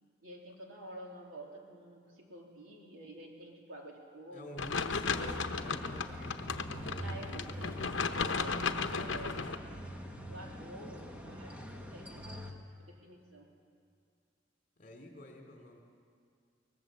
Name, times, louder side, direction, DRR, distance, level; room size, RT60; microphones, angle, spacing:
voice 1, 0.2-4.8 5.3-5.5 7.0-9.9 10.3-13.5, right 1 dB, 90° right, 0 dB, 3.6 m, -50 dB
voice 2, 4.3-6.0 14.8-15.8, left 1 dB, 40° left, 2 dB, 3.2 m, -49 dB
sound 1, 4.6-9.6, left 5 dB, 70° left, 0.9 m, -35 dB
sound 2, 5.1-12.5, equal, 5° right, 1.4 m, -44 dB
22.5 x 19.5 x 7.7 m, 2.3 s
head